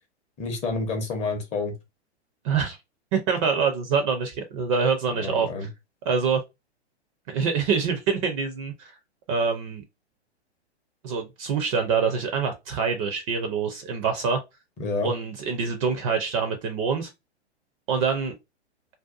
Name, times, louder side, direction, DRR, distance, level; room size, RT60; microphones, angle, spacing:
voice 1, 0.4-1.7 5.2-5.7 14.8-15.1, left 3 dB, 20° left, 0.6 m, -28 dB
voice 2, 2.4-2.8 3.1-5.7 6.1-6.4 7.3-8.9 9.3-9.8 11.0-14.4 15.0-17.1 17.9-18.3, right 5 dB, 30° right, 0.4 m, -25 dB
2.6 x 2.2 x 2.4 m
hypercardioid pair, 115°, 34 cm